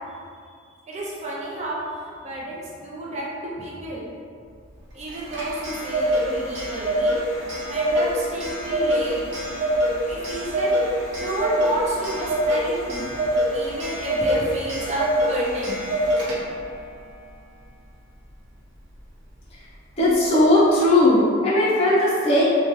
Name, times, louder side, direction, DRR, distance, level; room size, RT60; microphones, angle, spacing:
voice 1, 0.9-1.8 2.2-4.1 4.9-7.1 7.6-9.2 10.1-10.7 11.2-13.2 13.5-15.8, right 1 dB, 35° right, -5 dB, 0.5 m, -31 dB
Clock, 5.1-16.7, equal, 65° right, 0.8 m, -25 dB
voice 2, 20.0-22.4, left 1 dB, 30° left, -6 dB, 0.6 m, -18 dB
2.9 x 2.2 x 2.9 m, 2.2 s
head